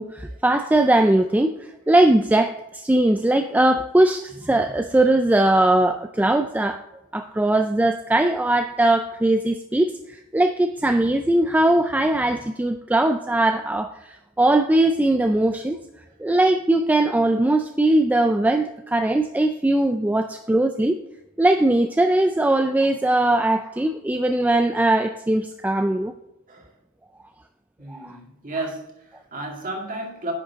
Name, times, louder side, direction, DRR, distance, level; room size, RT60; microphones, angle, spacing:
voice 1, 0.0-6.8 7.1-15.8 16.2-21.0 21.4-26.1 27.9-28.2, right 1 dB, 5° right, 6 dB, 0.3 m, -20 dB
voice 2, 27.8-30.3, right 2 dB, 40° right, 1 dB, 2.1 m, -33 dB
9.9 x 6.5 x 3.5 m, 0.93 s
head